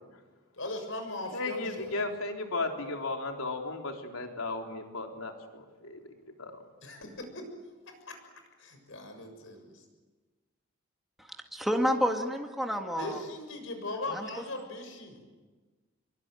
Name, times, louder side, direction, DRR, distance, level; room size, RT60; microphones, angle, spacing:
voice 1, 0.5-1.9 6.8-7.5 8.1-8.2 8.6-9.8 13.0-15.2, left 2 dB, 65° left, 6 dB, 6.8 m, -39 dB
voice 2, 1.3-6.0 6.4-6.5, left 3 dB, 85° left, 3 dB, 3.8 m, -35 dB
voice 3, 11.3-13.2 14.1-14.3, equal, ahead, 2 dB, 1.9 m, -29 dB
27.0 x 23.5 x 9.2 m, 1.3 s
head